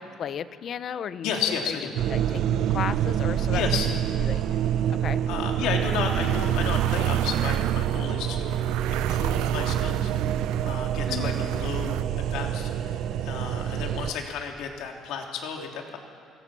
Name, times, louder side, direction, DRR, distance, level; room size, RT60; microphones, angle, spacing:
voice 1, 0.0-1.3 1.7-1.8 2.1-4.4 4.9-5.2 11.0-11.4, left 8 dB, 35° left, 14 dB, 0.7 m, -34 dB
voice 2, 1.2-1.9 3.5-3.9 5.3-8.6 8.9-10.1 10.6-13.0 13.2-16.0, left 6 dB, 75° left, 2 dB, 3.1 m, -32 dB
sound 1, 2.0-14.1, right 10 dB, 55° right, 0.8 m, -26 dB
sound 2, 5.8-12.0, right 15 dB, 90° right, 0.5 m, -36 dB
26.0 x 22.5 x 6.2 m, 2.5 s
cardioid pair, 180°, 0 cm